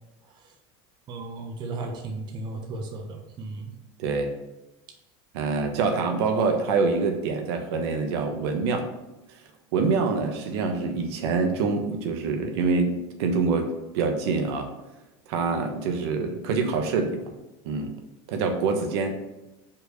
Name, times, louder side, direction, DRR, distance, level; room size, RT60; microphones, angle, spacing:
voice 1, 1.1-3.7, right 2 dB, 30° right, 3 dB, 1.1 m, -35 dB
voice 2, 4.0-4.3 5.3-8.9 9.7-14.7 15.3-17.2 17.6-17.9 18.3-19.2, right 4 dB, 75° right, 5 dB, 1.2 m, -25 dB
5.5 x 4.7 x 6.4 m, 0.99 s
supercardioid pair, 155°, 14 cm